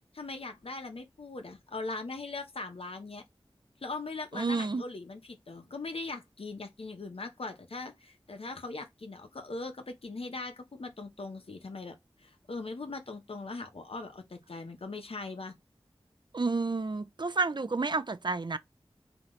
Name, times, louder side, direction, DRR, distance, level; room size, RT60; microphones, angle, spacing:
voice 1, 0.1-3.2 3.8-15.5, left 3 dB, 75° left, 0.9 m, -40 dB
voice 2, 4.3-4.8 16.3-18.6, right 3 dB, 50° right, 0.5 m, -30 dB
3.8 x 2.9 x 3.1 m
wide cardioid pair, 60°, 10 cm